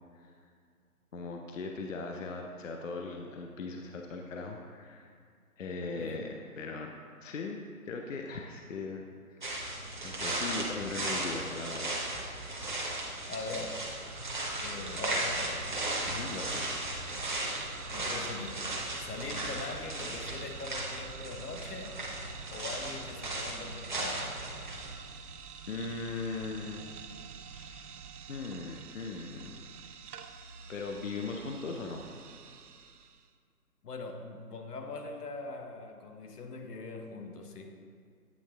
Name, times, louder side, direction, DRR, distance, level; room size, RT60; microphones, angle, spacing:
voice 1, 1.1-5.1 5.6-6.9 7.2-9.0 9.3-9.6 10.0-11.9 16.1-16.6 25.7-27.1 27.5-27.9 28.3-29.9 30.7-32.0, left 3 dB, 55° left, 2 dB, 0.5 m, -39 dB
voice 2, 6.0-6.3 13.3-13.8 14.6-15.7 17.9-18.6 19.0-22.0 22.5-24.3 33.8-37.8, left 3 dB, 85° left, 4 dB, 0.9 m, -42 dB
sound 1, 9.4-24.9, right 1 dB, 30° right, 0.7 m, -36 dB
sound 2, 13.6-33.3, right 6 dB, 80° right, 0.6 m, -48 dB
8.4 x 3.7 x 3.3 m, 2.1 s
hypercardioid pair, 170°, 46 cm